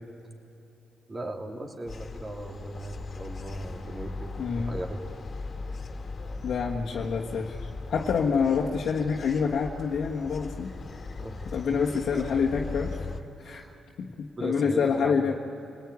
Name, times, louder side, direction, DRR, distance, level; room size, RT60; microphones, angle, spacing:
voice 1, 1.1-5.0 11.2-12.4 13.4-13.8 14.3-15.4, right 1 dB, 35° right, 2 dB, 3.3 m, -38 dB
sound 1, 1.9-13.2, left 3 dB, 45° left, 2.0 m, -39 dB
voice 2, 4.4-4.8 6.4-10.7 11.5-13.1 13.4-13.6 14.0-15.3, left 6 dB, 70° left, -2 dB, 1.5 m, -27 dB
27.0 x 19.0 x 9.5 m, 2.9 s
supercardioid pair, 60°, 0 cm